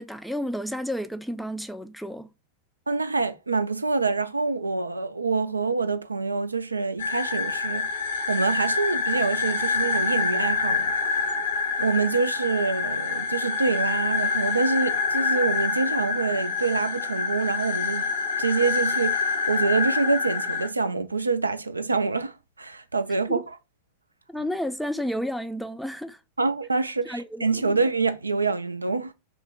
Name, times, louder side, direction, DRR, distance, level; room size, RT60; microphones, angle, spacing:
voice 1, 0.0-2.3 23.3-23.4 24.3-26.2 27.1-27.8, equal, ahead, 0.3 m, -31 dB
voice 2, 2.9-11.2 11.8-18.1 18.4-23.6 26.4-29.1, right 4 dB, 80° right, 0.3 m, -26 dB
sound 1, 7.0-20.7, left 4 dB, 65° left, 0.7 m, -26 dB
2.9 x 2.1 x 3.5 m
figure-of-eight pair, 90°, 0 cm